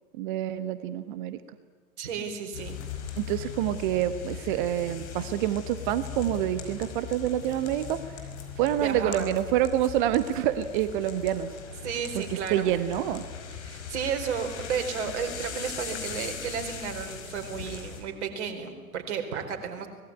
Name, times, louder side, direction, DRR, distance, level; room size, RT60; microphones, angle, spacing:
voice 1, 0.2-1.4 3.2-8.0 8.6-11.5 12.1-13.3, right 12 dB, 35° right, 12 dB, 1.2 m, -27 dB
voice 2, 2.0-2.8 8.8-9.3 11.8-12.8 13.6-19.9, right 6 dB, 50° right, 5 dB, 4.5 m, -33 dB
sound 1, 2.5-18.0, left 7 dB, 50° left, 5.2 m, -39 dB
24.5 x 20.0 x 9.7 m, 1.5 s
figure-of-eight pair, 105°, 43 cm